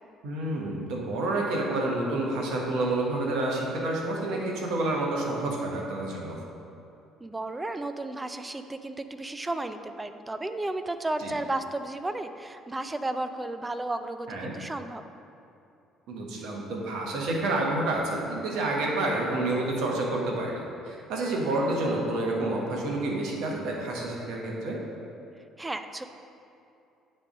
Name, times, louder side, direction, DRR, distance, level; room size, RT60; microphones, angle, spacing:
voice 1, 0.2-6.4 11.2-11.3 14.3-14.5 16.1-24.8, right 2 dB, 65° right, -1 dB, 1.2 m, -29 dB
voice 2, 7.2-15.0 25.6-26.0, right 2 dB, 20° right, 9 dB, 0.5 m, -33 dB
8.9 x 3.3 x 5.1 m, 2.7 s
hypercardioid pair, 50°, 0 cm